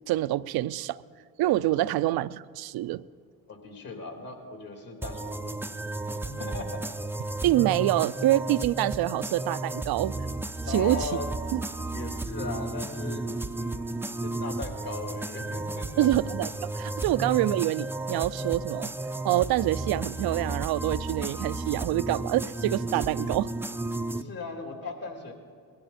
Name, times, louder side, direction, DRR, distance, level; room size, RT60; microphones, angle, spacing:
voice 1, 0.1-1.0 1.4-3.0 7.4-10.2 10.7-11.1 11.5-11.6 16.0-18.9 19.2-23.5, right 15 dB, 65° right, 17 dB, 0.5 m, -26 dB
voice 2, 3.5-5.6 6.2-6.8 10.6-11.6 11.9-13.9 14.2-16.1 24.1-25.3, left 3 dB, 55° left, 3 dB, 3.2 m, -38 dB
sound 1, 5.0-24.2, right 2 dB, 5° right, 0.5 m, -33 dB
20.0 x 13.0 x 4.3 m, 2.1 s
supercardioid pair, 60°, 41 cm